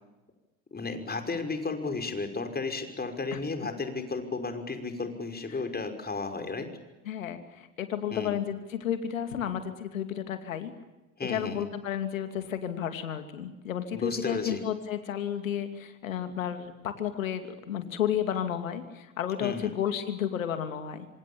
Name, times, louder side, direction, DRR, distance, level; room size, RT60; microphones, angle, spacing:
voice 1, 0.7-6.7 8.1-8.3 11.2-11.7 13.9-14.6 19.4-19.7, left 3 dB, 25° left, 6 dB, 5.8 m, -33 dB
voice 2, 7.0-10.7 11.2-21.1, left 9 dB, 85° left, 8 dB, 2.7 m, -32 dB
27.0 x 26.5 x 7.2 m, 1.0 s
hypercardioid pair, 60°, 39 cm